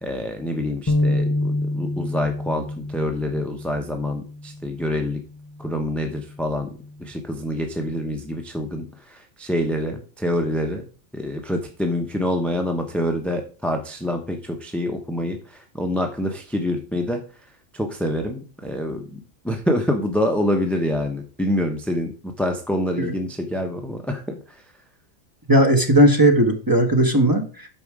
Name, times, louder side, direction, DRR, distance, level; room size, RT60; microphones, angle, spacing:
voice 1, 0.0-5.2 5.6-6.7 7.0-10.9 11.1-17.2 17.7-24.6, left 1 dB, ahead, 4 dB, 0.9 m, -26 dB
sound 1, 0.9-7.1, left 1 dB, 30° left, 0.3 m, -28 dB
voice 2, 25.5-27.7, right 1 dB, 15° right, 4 dB, 1.4 m, -17 dB
9.2 x 6.3 x 4.9 m, 0.38 s
omnidirectional pair, 1.4 m